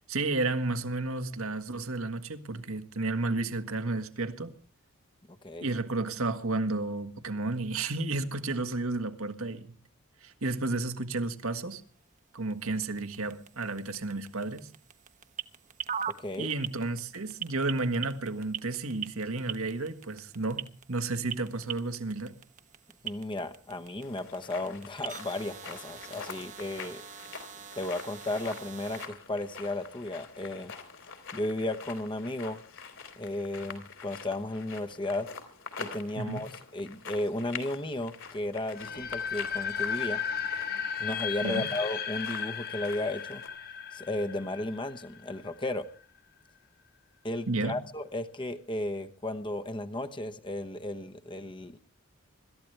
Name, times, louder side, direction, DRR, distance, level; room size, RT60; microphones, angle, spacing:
voice 1, 0.1-4.5 5.6-9.7 10.2-11.8 12.3-14.7 16.4-22.3 36.2-36.4 41.4-41.7 47.5-47.8, right 2 dB, 80° right, 1.8 m, -32 dB
sound 1, 11.7-29.1, right 8 dB, 35° right, 1.1 m, -43 dB
voice 2, 16.1-16.5 23.0-27.0 27.7-30.7 31.3-32.6 33.2-35.3 35.8-40.2 41.0-43.4 43.9-45.9 47.2-51.8, left 1 dB, 25° left, 1.0 m, -34 dB
sound 2, 24.0-43.5, left 5 dB, 65° left, 3.6 m, -46 dB
sound 3, 38.7-45.6, left 7 dB, 45° left, 1.3 m, -35 dB
26.0 x 13.5 x 3.3 m
head